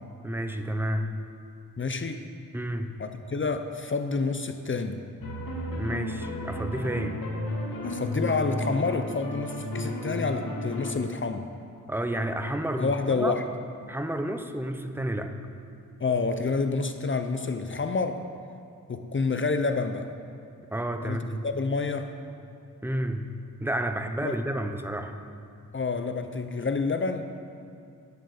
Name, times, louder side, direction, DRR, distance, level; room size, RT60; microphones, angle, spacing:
voice 1, 0.2-1.2 2.5-2.9 5.7-7.2 11.9-13.4 13.9-15.4 20.7-21.5 22.8-23.3 23.6-25.1, right 1 dB, 5° right, 7 dB, 0.8 m, -30 dB
voice 2, 1.8-2.2 3.0-5.0 7.8-11.5 12.8-13.4 16.0-18.2 18.9-20.1 21.0-21.2 21.4-22.1 24.2-24.4 25.7-27.2, left 4 dB, 35° left, 7 dB, 0.7 m, -28 dB
sound 1, 5.2-10.9, left 1 dB, 75° left, 1.9 m, -33 dB
10.5 x 8.4 x 6.9 m, 2.5 s
wide cardioid pair, 90°, 34 cm